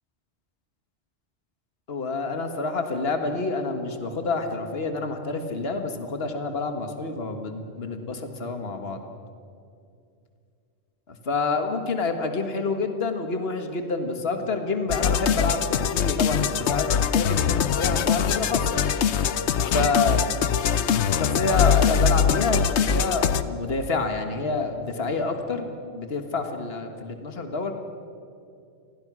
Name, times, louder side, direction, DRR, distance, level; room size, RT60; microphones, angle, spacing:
voice 1, 1.9-9.0 11.1-18.8 19.7-20.4 21.2-25.7 25.9-27.7, left 3 dB, 65° left, 6 dB, 1.9 m, -28 dB
sound 1, 14.9-23.4, left 7 dB, 85° left, 1.1 m, -23 dB
28.0 x 20.5 x 6.2 m, 2.4 s
omnidirectional pair, 1.1 m